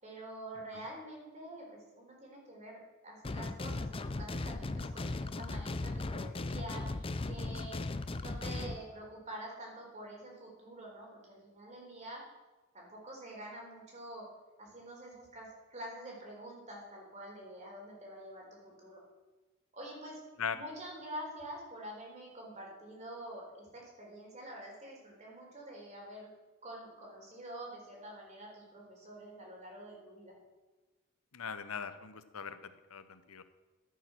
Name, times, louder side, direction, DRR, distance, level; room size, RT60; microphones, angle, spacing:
voice 1, 0.0-7.8 8.2-12.2 12.7-14.2 14.6-19.0 19.7-20.2 20.5-26.3 26.6-30.3, right 1 dB, 35° right, -2 dB, 4.0 m, -47 dB
sound 1, 3.2-8.8, left 2 dB, 25° left, 0.5 m, -37 dB
voice 2, 31.3-33.4, left 6 dB, 75° left, 12 dB, 0.9 m, -40 dB
12.0 x 8.7 x 6.1 m, 1.2 s
head